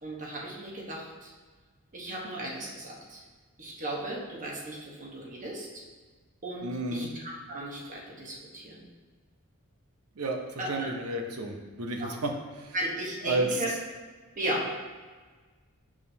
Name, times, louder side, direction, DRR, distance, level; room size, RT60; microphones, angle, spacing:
voice 1, 0.0-1.3 1.9-3.2 3.6-5.8 6.4-8.9 10.6-10.9 12.0-12.2 12.7-13.7 14.4-14.8, right 1 dB, 35° right, -3 dB, 1.1 m, -36 dB
voice 2, 6.6-7.1 10.2-12.3 12.6-12.7 13.2-13.5, right 2 dB, 80° right, 3 dB, 0.8 m, -32 dB
7.2 x 4.9 x 2.8 m, 1.4 s
head